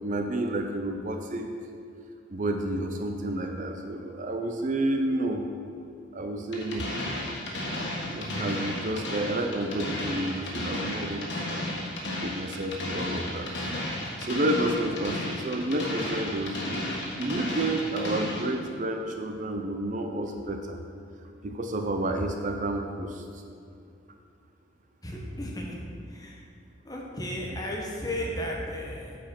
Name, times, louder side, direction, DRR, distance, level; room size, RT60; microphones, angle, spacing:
voice 1, 0.0-1.5 2.3-5.5 6.1-6.9 7.6-11.7 12.2-13.7 14.2-16.6 17.2-20.8 21.4-23.4, right 1 dB, 40° right, 4 dB, 0.5 m, -30 dB
sound 1, 6.5-18.5, left 1 dB, 65° left, 1.5 m, -33 dB
voice 2, 25.0-25.8 26.1-26.5 26.8-29.2, left 1 dB, 20° left, -1 dB, 1.1 m, -34 dB
9.1 x 4.8 x 5.9 m, 2.4 s
head